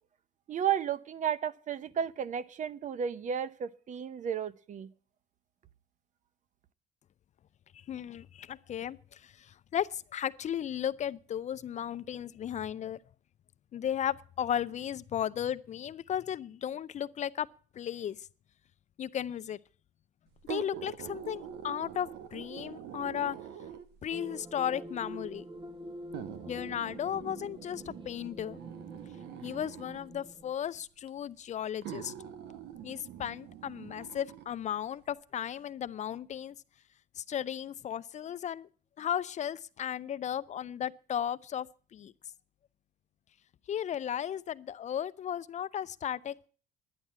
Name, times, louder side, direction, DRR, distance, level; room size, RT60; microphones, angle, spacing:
voice 1, 0.5-4.9, right 8 dB, 45° right, 0.8 m, -33 dB
voice 2, 7.9-13.0 13.7-17.5 17.8-18.2 19.0-19.6 20.5-23.4 24.0-25.4 26.5-28.6 29.4-32.1 32.8-36.5 37.2-38.7 39.0-41.7 41.9-42.1 43.7-46.5, left 9 dB, 45° left, 0.5 m, -35 dB
sound 1, 20.4-24.1 25.0-25.1 26.1-30.1 31.1-31.2 31.8-34.5 34.9-35.0, right 10 dB, 80° right, 1.3 m, -45 dB
sound 2, 24.1-30.5, right 1 dB, 30° right, 1.4 m, -46 dB
11.0 x 9.8 x 7.4 m
cardioid pair, 110°, 17 cm